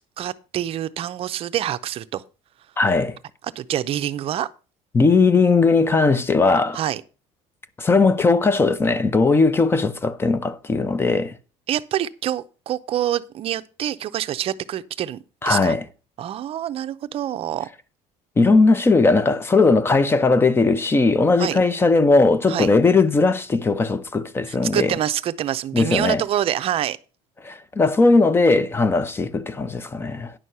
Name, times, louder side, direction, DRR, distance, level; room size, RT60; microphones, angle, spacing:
voice 1, 0.2-2.2 3.6-4.5 6.7-7.0 11.7-15.7 16.2-17.7 21.4-21.6 22.5-22.7 24.5-27.0, right 11 dB, 40° right, 0.6 m, -26 dB
voice 2, 2.8-3.2 4.9-6.8 7.8-11.3 15.4-15.8 18.4-24.9 25.7-26.2 27.4-30.3, left 3 dB, 15° left, 0.7 m, -18 dB
10.0 x 6.3 x 5.6 m
cardioid pair, 155°, 15 cm